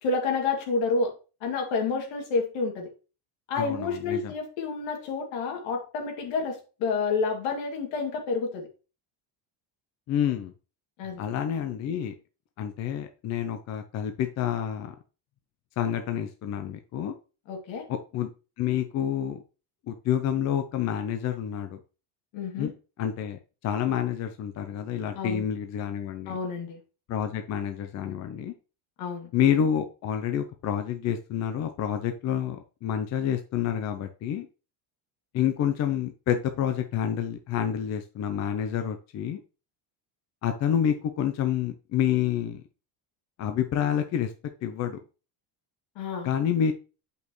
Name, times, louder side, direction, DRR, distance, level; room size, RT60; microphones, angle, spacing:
voice 1, 0.0-1.1 1.4-2.9 3.5-8.7 11.0-11.2 17.5-17.8 22.3-22.7 25.1-25.4 26.3-26.8 29.0-29.3 46.0-46.3, left 4 dB, 65° left, 1 dB, 2.5 m, -29 dB
voice 2, 3.5-4.3 10.1-10.5 11.2-12.1 12.6-14.9 15.8-17.2 17.9-18.3 18.6-19.4 19.9-21.8 22.6-22.7 23.0-26.4 27.1-28.5 29.3-34.5 35.3-39.4 40.4-42.6 43.4-44.3 44.6-45.0 46.2-46.7, left 9 dB, 35° left, 7 dB, 0.5 m, -28 dB
8.5 x 5.4 x 3.1 m, 0.33 s
cardioid pair, 175°, 48 cm